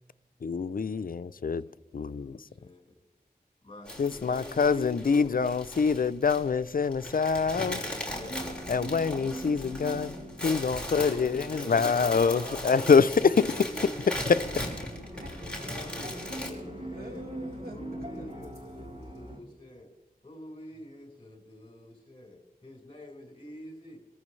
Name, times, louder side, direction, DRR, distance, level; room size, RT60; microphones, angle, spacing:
voice 1, 0.4-1.6 1.9-2.4 4.0-7.8 8.7-10.2 10.4-13.1, left 5 dB, 60° left, 0.5 m, -25 dB
voice 2, 1.5-3.0 3.6-5.4 8.1-8.5 11.6-12.7 13.4-14.5 15.1-17.2 17.7-19.9 20.2-24.0, left 1 dB, 35° left, 4.8 m, -46 dB
sound 1, 3.9-16.5, left 1 dB, 5° left, 5.0 m, -38 dB
sound 2, 8.1-19.4, right 1 dB, 45° right, 3.7 m, -43 dB
voice 3, 10.9-15.3 15.6-15.8 16.9-17.8 18.2-18.3, right 1 dB, 70° right, 2.1 m, -46 dB
26.5 x 14.0 x 3.2 m
wide cardioid pair, 65°, 16 cm